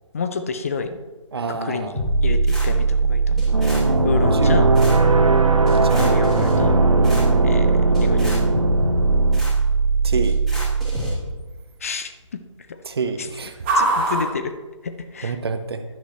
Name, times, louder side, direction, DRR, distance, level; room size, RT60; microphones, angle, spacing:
voice 1, 0.1-1.0 1.5-1.9 2.2-3.8 4.0-4.6 5.9-6.8 7.4-8.5 11.8-12.1 13.2-13.3 13.8-14.5 14.8-15.4, left 5 dB, 25° left, 9 dB, 0.5 m, -29 dB
sound 1, 0.6-15.5, right 2 dB, 20° right, 1.8 m, -33 dB
voice 2, 1.3-2.0 4.3-4.7 5.7-6.1 10.0-10.4 12.8-13.6 15.2-15.8, right 4 dB, 50° right, 9 dB, 1.0 m, -27 dB
sound 2, 1.9-11.1, right 4 dB, ahead, 3.4 m, -20 dB
sound 3, 3.5-9.4, right 2 dB, 80° right, 1.0 m, -20 dB
11.5 x 10.5 x 3.1 m, 1.2 s
figure-of-eight pair, 145°, 17 cm